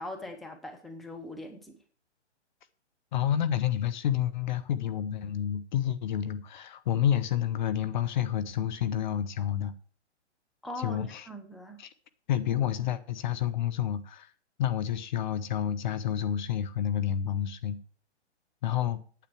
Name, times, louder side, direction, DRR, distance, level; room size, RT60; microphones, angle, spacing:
voice 1, 0.0-1.8 10.6-11.8, left 1 dB, ahead, 0.9 m, -41 dB
voice 2, 3.1-9.7 10.8-11.3 11.8-11.9 12.3-14.3 14.6-17.8 18.6-19.0, left 10 dB, 40° left, 1.0 m, -29 dB
9.3 x 8.2 x 6.3 m
figure-of-eight pair, 130°, 35 cm